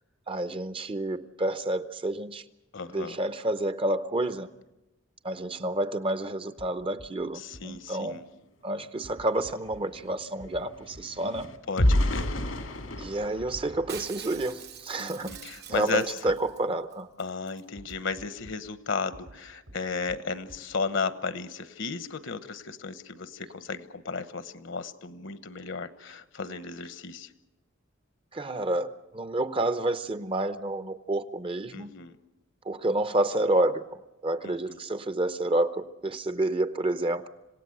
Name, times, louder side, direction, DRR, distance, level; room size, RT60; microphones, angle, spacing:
voice 1, 0.3-2.4 2.9-4.5 5.2-8.2 8.6-11.5 13.0-15.3 15.7-17.1 28.3-31.9 32.7-33.8 34.2-37.3, right 1 dB, 30° right, 12 dB, 0.7 m, -29 dB
voice 2, 2.7-3.2 7.3-8.2 11.7-12.3 15.0-16.1 17.2-27.3 31.7-32.2 34.4-34.8, left 4 dB, 65° left, 13 dB, 1.1 m, -34 dB
sound 1, 6.6-6.7 7.0-7.1 7.5-7.6 9.0-9.8 10.4-10.6 10.9-11.0 11.3-11.4 11.8-11.9 13.4-13.6 13.9-14.0 15.3-15.4 15.7-15.8 16.3-16.4 17.8-18.5 19.1-19.4 19.7-19.8 20.1-20.2 20.5-20.6, equal, 80° right, 4.0 m, -47 dB
sound 2, 8.8-8.9 9.2-14.7 15.2-15.4 15.8-16.0, left 1 dB, 90° left, 2.2 m, -31 dB
Shatter, 13.9-16.6 16.9-17.0 17.2-17.6 17.9-18.0, right 8 dB, 55° right, 1.0 m, -44 dB
27.0 x 17.5 x 7.9 m, 1.0 s
head